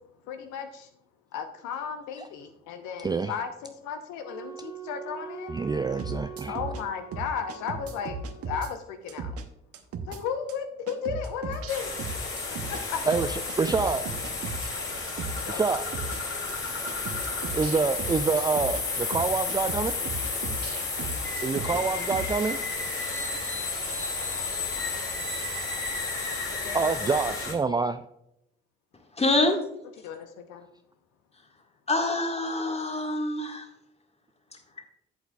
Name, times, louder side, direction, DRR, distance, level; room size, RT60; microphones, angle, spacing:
voice 1, 0.3-0.9 1.3-5.6 6.5-8.2 8.4-9.4 10.1-11.9 12.7-13.0 15.5-15.6 26.6-27.2 30.0-30.7, left 7 dB, 65° left, 7 dB, 0.9 m, -35 dB
Wind instrument woodwind instrument, 4.2-8.5, right 5 dB, 80° left, 3.7 m, -43 dB
voice 2, 5.5-6.6 13.1-14.1 15.5-15.9 16.7-16.9 17.5-20.0 21.4-22.6 25.2-25.7 26.7-28.0, right 4 dB, 15° right, 9 dB, 0.3 m, -27 dB
sound 1, 6.0-6.8 7.1-8.7 9.1-9.4 9.7-10.2 10.5-10.6 10.9-12.8 13.1-14.7 15.1-15.4 15.7-16.2 16.5-16.6 16.9-18.8 19.1-21.8 22.1-22.3, right 4 dB, 50° right, 0.9 m, -36 dB
sound 2, 11.7-27.5, left 3 dB, 40° left, 2.8 m, -32 dB
voice 3, 29.2-29.6 31.9-33.7, left 2 dB, 20° left, 4 dB, 1.7 m, -25 dB
13.0 x 8.0 x 2.3 m, 0.79 s
figure-of-eight pair, 40°, 31 cm